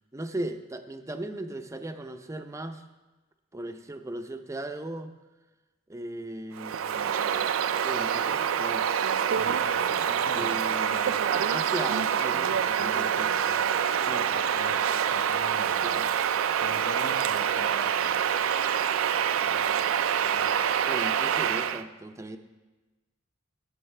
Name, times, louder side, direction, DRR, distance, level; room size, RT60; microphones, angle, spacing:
voice 1, 0.0-2.8 3.5-5.1 5.9-7.5 7.8-8.9 10.4-11.0 11.3-14.4 15.8-16.1 19.3-19.7 20.2-20.6 20.9-22.4, right 1 dB, 15° right, 6 dB, 0.5 m, -38 dB
Bird vocalization bird call bird song, 6.6-21.8, right 8 dB, 80° right, 0.4 m, -26 dB
voice 2, 9.3-11.3 14.0-16.1 16.5-18.2, left 2 dB, 45° left, 3 dB, 0.9 m, -42 dB
Wind instrument woodwind instrument, 10.3-15.6, left 1 dB, 70° left, 1.9 m, -49 dB
16.5 x 8.0 x 3.3 m, 1.2 s
head